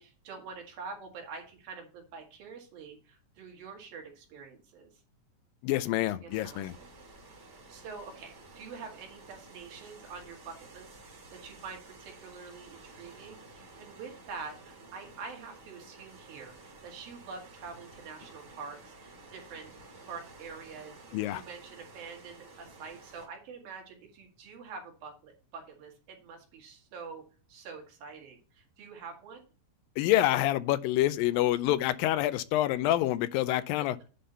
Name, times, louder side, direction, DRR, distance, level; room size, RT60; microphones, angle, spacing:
voice 1, 0.0-4.9 5.9-6.9 7.7-8.3 8.6-19.7 20.0-21.0 21.3-27.2 27.5-29.4, right 5 dB, 80° right, 3.8 m, -46 dB
voice 2, 5.6-6.7 21.1-21.4 30.0-34.0, left 14 dB, 85° left, 2.3 m, -27 dB
sound 1, 6.3-23.3, right 3 dB, 20° right, 2.5 m, -52 dB
10.0 x 4.0 x 5.6 m
omnidirectional pair, 4.1 m